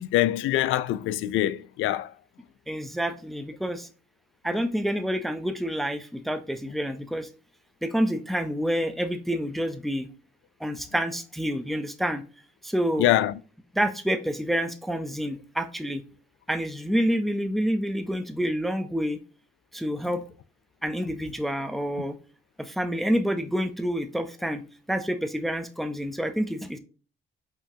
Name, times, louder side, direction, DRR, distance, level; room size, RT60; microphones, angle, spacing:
voice 1, 0.0-2.1 13.0-13.3, left 14 dB, 85° left, 0.4 m, -24 dB
voice 2, 2.7-3.9 4.4-7.3 7.8-10.1 10.6-12.2 12.6-13.1 13.7-16.0 16.5-19.2 19.7-20.2 20.8-22.2 22.6-24.6 24.9-26.8, equal, ahead, 0.5 m, -28 dB
5.8 x 2.9 x 2.7 m
cardioid pair, 90°, 20 cm